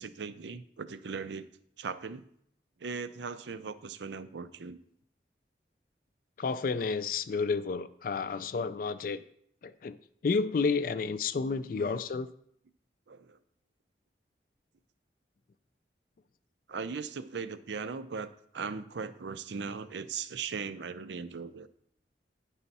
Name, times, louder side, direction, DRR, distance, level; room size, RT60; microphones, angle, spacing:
voice 1, 0.0-1.5 1.8-2.3 2.8-4.8 11.5-12.0 13.1-13.4 16.7-21.7, right 5 dB, 80° right, 12 dB, 0.5 m, -39 dB
voice 2, 6.4-9.2 9.6-10.0 10.2-12.3, left 4 dB, 50° left, 13 dB, 0.3 m, -31 dB
9.9 x 5.6 x 4.1 m, 0.68 s
head